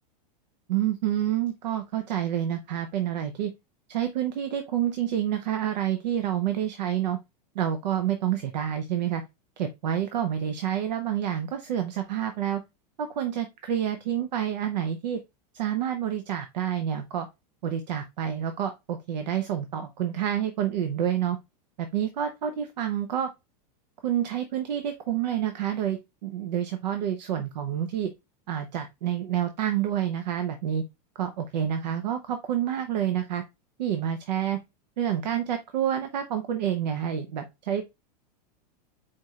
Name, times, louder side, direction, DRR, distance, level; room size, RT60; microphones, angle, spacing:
voice 1, 0.7-3.5 3.9-7.2 7.5-9.2 9.6-12.6 13.0-15.2 15.5-17.3 17.6-21.4 21.8-23.3 24.0-28.1 28.5-30.8 31.2-33.4 33.8-34.6 35.0-37.8, right 10 dB, 90° right, 0.8 m, -28 dB
4.7 x 4.3 x 2.4 m
supercardioid pair, 140°, 21 cm